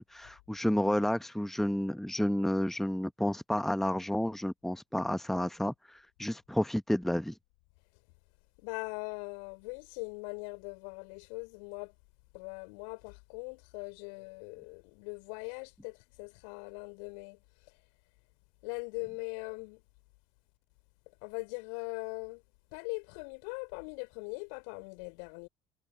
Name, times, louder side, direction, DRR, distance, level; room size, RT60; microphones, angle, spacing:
voice 1, 0.0-7.3, left 1 dB, ahead, 1.1 m, -31 dB
voice 2, 8.6-11.9 12.3-17.4 18.6-19.8 21.2-22.4 22.7-25.5, left 38 dB, 65° left, 3.4 m, -41 dB
figure-of-eight pair, 55°, 17 cm